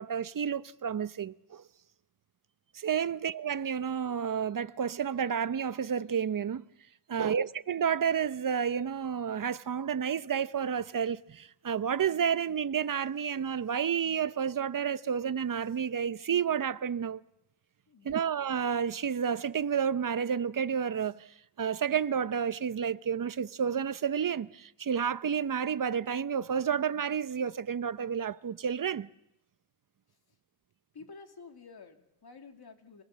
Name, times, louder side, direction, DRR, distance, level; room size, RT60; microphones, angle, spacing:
voice 1, 0.0-1.6 2.7-6.6 7.1-17.2 18.0-29.1, right 7 dB, 45° right, 0.8 m, -30 dB
voice 2, 7.1-7.5 17.9-18.3 30.1-30.4 30.9-33.0, left 4 dB, 55° left, 2.6 m, -52 dB
28.0 x 19.5 x 7.5 m
cardioid pair, 80°, 45 cm